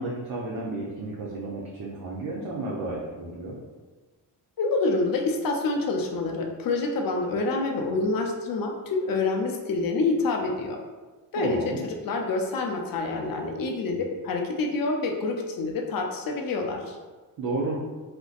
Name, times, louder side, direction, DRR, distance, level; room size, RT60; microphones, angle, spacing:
voice 1, 0.0-3.6 11.3-11.8 17.4-17.8, right 2 dB, 45° right, -5 dB, 0.7 m, -32 dB
voice 2, 4.6-10.8 11.3-17.0, left 3 dB, 45° left, 2 dB, 0.6 m, -27 dB
2.5 x 2.1 x 2.4 m, 1.3 s
hypercardioid pair, 45°, 49 cm